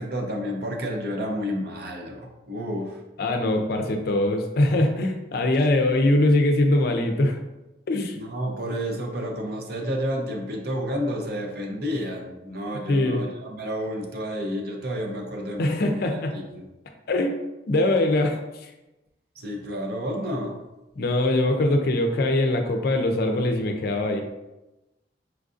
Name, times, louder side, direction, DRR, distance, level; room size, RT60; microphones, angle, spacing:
voice 1, 0.0-3.0 8.2-16.7 19.4-20.6, equal, 55° right, 1 dB, 0.6 m, -30 dB
voice 2, 3.2-7.4 7.9-8.2 12.9-13.2 15.6-16.3 17.1-17.4 17.7-18.7 21.0-24.2, left 1 dB, 55° left, 4 dB, 0.4 m, -22 dB
4.5 x 2.5 x 2.4 m, 1.0 s
head